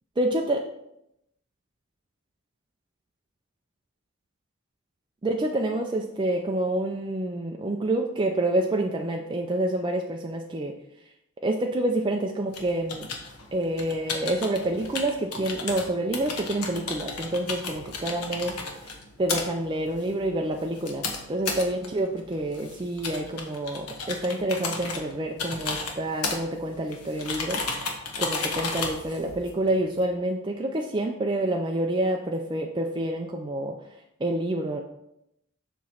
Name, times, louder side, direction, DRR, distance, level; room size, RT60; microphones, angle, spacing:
voice 1, 0.2-0.7 5.2-10.8 11.4-13.1 13.5-18.5 18.8-18.9 19.2-33.8 34.2-34.8, right 1 dB, 20° right, 2 dB, 0.4 m, -28 dB
sound 1, 12.5-30.0, left 4 dB, 90° left, 1.1 m, -34 dB
7.2 x 3.1 x 5.6 m, 0.82 s
head